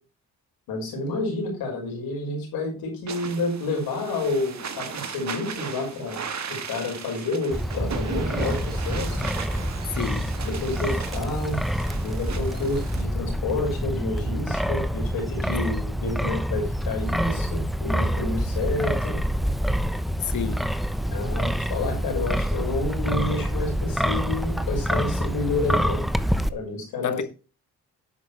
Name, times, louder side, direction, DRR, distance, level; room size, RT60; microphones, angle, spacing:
voice 1, 0.7-9.2 10.4-11.6 11.9-19.2 21.1-26.0 26.5-27.2, left 2 dB, 80° left, 5.8 m, -29 dB
sound 1, 3.1-13.0, right 6 dB, 50° right, 1.7 m, -37 dB
Wind, 7.5-26.5, equal, ahead, 0.8 m, -27 dB
voice 2, 9.9-10.3 20.2-20.7 27.0-27.2, left 8 dB, 55° left, 1.4 m, -30 dB
11.0 x 7.8 x 3.3 m
supercardioid pair, 55°, 35 cm